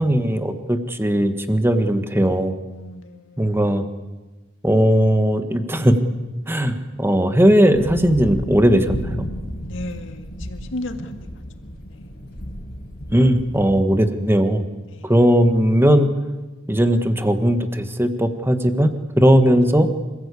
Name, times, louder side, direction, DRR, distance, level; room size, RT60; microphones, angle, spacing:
voice 1, 0.0-2.5 3.4-3.8 4.6-6.0 6.5-9.3 13.1-14.6 15.0-16.1 16.7-19.9, equal, 10° right, 8 dB, 1.5 m, -18 dB
voice 2, 2.7-3.8 9.7-11.1 11.9-12.0 14.8-15.1, left 1 dB, 70° left, 6 dB, 2.0 m, -35 dB
sound 1, 7.7-13.8, equal, 55° left, 4.7 m, -33 dB
27.5 x 15.0 x 8.4 m, 1.2 s
head